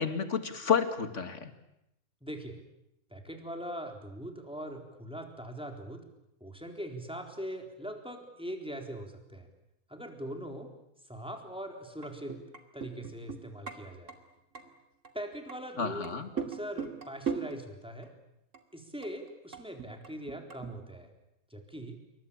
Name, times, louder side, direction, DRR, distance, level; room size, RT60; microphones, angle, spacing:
voice 1, 0.0-1.5 15.8-16.3, left 6 dB, 55° left, 9 dB, 2.4 m, -30 dB
voice 2, 2.2-2.6 3.1-6.0 6.4-9.5 9.9-10.7 11.1-12.4 12.7-14.1 15.1-18.1 18.7-21.1 21.5-22.0, equal, 5° right, 4 dB, 3.9 m, -41 dB
sound 1, 12.0-13.8 14.1-14.2 14.6-14.7 15.1-15.6 16.0-17.6 18.0-18.1 18.5-18.6 19.0-20.7, right 6 dB, 55° right, 2.8 m, -38 dB
27.5 x 24.0 x 8.8 m, 0.83 s
omnidirectional pair, 1.5 m